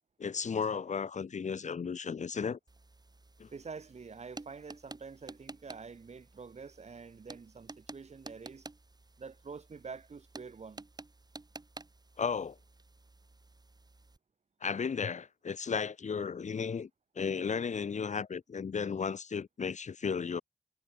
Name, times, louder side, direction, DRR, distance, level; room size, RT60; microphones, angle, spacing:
voice 1, 0.2-2.6 3.4-3.5 12.2-12.5 14.6-16.9 17.2-20.4, left 6 dB, 90° left, 1.1 m, -34 dB
sound 1, 2.7-14.2, right 2 dB, 35° right, 5.5 m, -52 dB
voice 2, 3.5-8.7 9.2-10.9, right 5 dB, 70° right, 1.5 m, -47 dB
wide cardioid pair, 100°, 12 cm